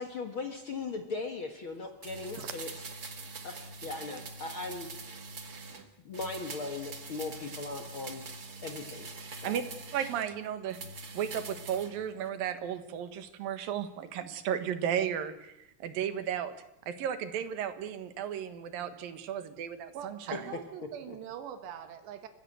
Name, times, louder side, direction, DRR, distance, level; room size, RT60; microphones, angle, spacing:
voice 1, 0.0-5.2 6.0-8.2 8.6-9.1 9.3-9.6 21.1-21.2, left 3 dB, 65° left, 5 dB, 1.2 m, -39 dB
sound 1, 2.0-5.8 6.1-10.3 10.7-11.9 12.2-12.3, right 3 dB, 45° right, 1.2 m, -44 dB
voice 2, 9.9-10.8 11.1-15.5 15.8-16.5 16.9-20.4, right 9 dB, 65° right, 10 dB, 3.0 m, -34 dB
voice 3, 20.0-22.3, right 9 dB, 85° right, 8 dB, 3.4 m, -42 dB
30.0 x 15.5 x 7.9 m, 0.87 s
omnidirectional pair, 4.8 m